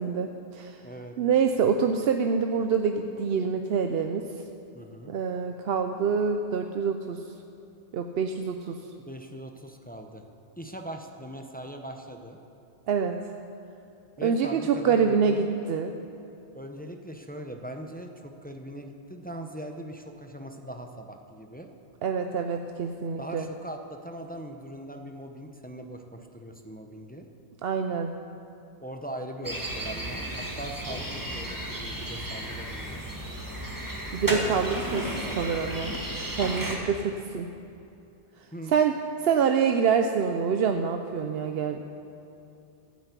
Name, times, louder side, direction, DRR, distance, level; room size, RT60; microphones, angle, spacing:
voice 1, 0.0-0.8 1.2-4.2 5.1-7.2 7.9-8.8 12.9-13.2 14.2-15.9 22.0-23.5 27.6-28.2 34.1-35.9 36.4-37.5 38.7-38.9 39.2-41.9, right 6 dB, 65° right, 6 dB, 0.8 m, -26 dB
voice 2, 0.8-1.2 4.7-5.1 9.1-10.3 10.6-12.4 14.2-15.5 16.5-21.7 23.2-27.3 28.8-33.0 38.5-38.8, right 1 dB, 10° left, 3 dB, 0.7 m, -40 dB
sound 1, 29.4-36.8, right 1 dB, 15° right, 1.7 m, -33 dB
12.5 x 8.9 x 8.2 m, 2.8 s
omnidirectional pair, 1.2 m